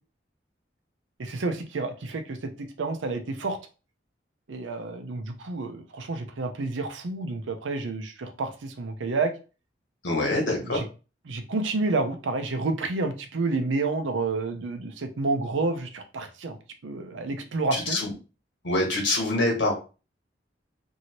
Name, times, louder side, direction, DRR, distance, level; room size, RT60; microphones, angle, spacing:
voice 1, 1.2-3.6 4.5-9.3 10.7-10.8 11.3-16.6 16.8-18.0, right 3 dB, 90° right, 0.5 m, -29 dB
voice 2, 10.0-10.8 17.7-18.1 18.6-19.7, left 2 dB, 80° left, 1.3 m, -25 dB
2.8 x 2.7 x 2.9 m
head